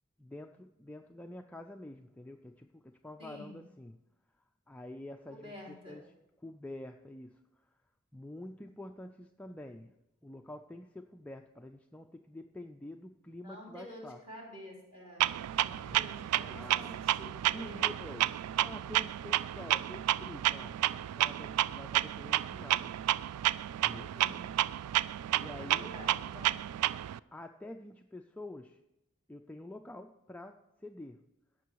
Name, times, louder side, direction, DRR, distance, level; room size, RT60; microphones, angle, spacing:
voice 1, 0.2-4.0 4.7-6.1 6.4-7.4 8.1-9.9 10.2-14.2 15.8-16.1 16.5-17.0 17.5-23.0 23.8-24.1 25.3-25.9 27.3-28.8 29.3-31.2, left 1 dB, 5° left, 4 dB, 0.3 m, -47 dB
voice 2, 3.2-3.6 5.3-6.0 13.4-15.3 15.6-17.9 24.1-24.5 25.6-26.5, left 1 dB, 25° right, -3 dB, 3.6 m, -49 dB
Clock, 15.2-27.2, right 13 dB, 90° right, 0.3 m, -31 dB
16.5 x 6.2 x 4.6 m, 0.92 s
head